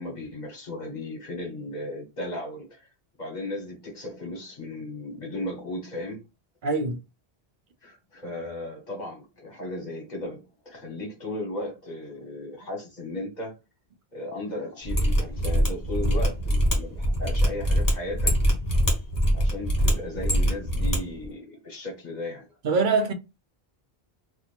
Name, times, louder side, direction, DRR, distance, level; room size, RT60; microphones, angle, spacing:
voice 1, 0.0-2.9 3.2-6.2 7.8-13.5 14.1-18.4 19.3-22.5, left 1 dB, 45° left, 1.4 m, -36 dB
voice 2, 6.6-7.0 22.6-23.1, right 4 dB, 60° right, 0.7 m, -23 dB
Mechanisms, 14.8-21.0 21.2-21.3, equal, 20° left, 1.2 m, -23 dB
2.8 x 2.4 x 4.2 m
omnidirectional pair, 1.0 m